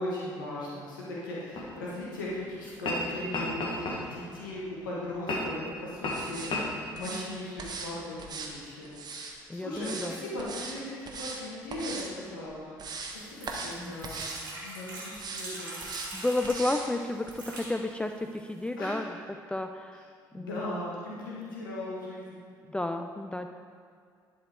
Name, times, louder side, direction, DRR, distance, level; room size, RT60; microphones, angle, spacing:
voice 1, 0.0-6.5 6.9-12.8 13.1-15.8 18.8-19.0 20.3-22.4, left 1 dB, 80° left, -6 dB, 1.3 m, -38 dB
sound 1, 1.5-1.7 2.7-3.0 3.3-4.3 5.3-5.6 6.0-6.2 6.5-6.7, left 2 dB, 50° left, 1.6 m, -31 dB
sound 2, 6.1-6.5 6.9-7.2 7.6-7.9 8.2-9.3 9.8-10.1 10.4-10.8 11.0-11.4 11.7-12.1 12.5-13.2 13.5-13.8 14.0-14.4 15.1-15.4 15.8-16.1 16.4-16.9 17.3-17.4, right 4 dB, 40° right, 1.1 m, -39 dB
voice 2, 9.5-10.2 13.8-14.0 16.1-19.1 19.5-20.0 20.3-20.6 22.7-23.5, left 2 dB, 10° left, 6 dB, 0.4 m, -32 dB
sound 3, 13.1-16.6 17.2-17.7 18.4-18.5 18.7-18.8, right 2 dB, 80° right, 1.6 m, -42 dB
10.5 x 4.2 x 4.8 m, 2.2 s
figure-of-eight pair, 50°, 11 cm